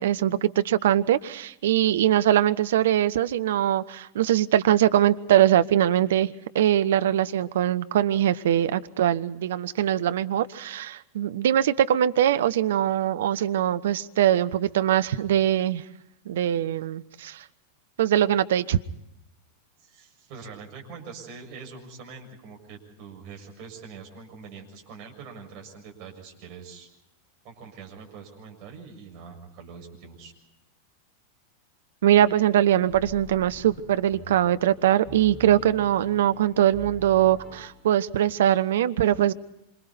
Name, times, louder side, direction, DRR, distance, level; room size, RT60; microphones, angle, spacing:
voice 1, 0.0-15.8 16.3-17.4 18.0-18.8 32.0-39.3, right 11 dB, 60° right, 0.8 m, -22 dB
voice 2, 19.8-26.9 27.4-30.3, right 5 dB, 45° right, 6.8 m, -44 dB
sound 1, 32.1-37.7, left 3 dB, 10° left, 5.0 m, -46 dB
27.0 x 26.0 x 4.2 m
figure-of-eight pair, 90°, 0 cm